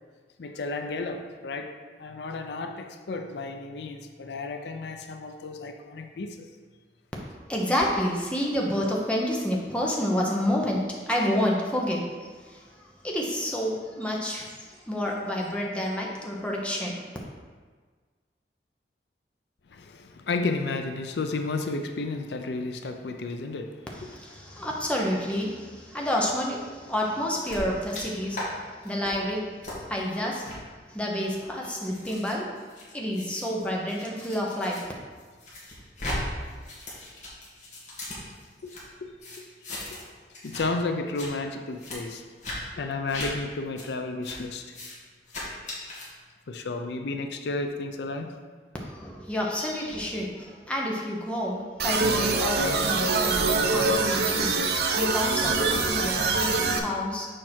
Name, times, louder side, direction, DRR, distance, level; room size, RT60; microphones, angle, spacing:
voice 1, 0.4-1.7 2.0-6.5 19.7-24.2 24.5-24.6 38.6-38.7 39.0-39.1 40.4-42.2 42.8-44.6 46.5-48.3, left 3 dB, 75° left, 5 dB, 0.5 m, -32 dB
voice 2, 7.5-12.6 13.0-14.5 14.9-17.0 24.1-28.5 28.8-29.4 29.8-30.5 30.9-32.4 32.9-34.8 48.8-54.5 55.0-57.3, equal, 5° left, -3 dB, 0.9 m, -29 dB
sound 1, 27.4-28.0 28.3-28.5 28.8-29.1 29.6-29.8 30.4-30.6 31.2-34.8 35.2-36.2 36.4-38.8 39.2-40.1 40.3-40.7 41.0-41.3 41.8-42.0 42.4-42.6 43.1-43.3 43.8-43.9 44.2-44.4 44.7-44.9 45.3-46.1, left 1 dB, 45° left, 1.8 m, -38 dB
sound 2, 51.8-56.8, right 3 dB, 65° right, 0.6 m, -24 dB
6.4 x 4.5 x 4.5 m, 1.5 s
head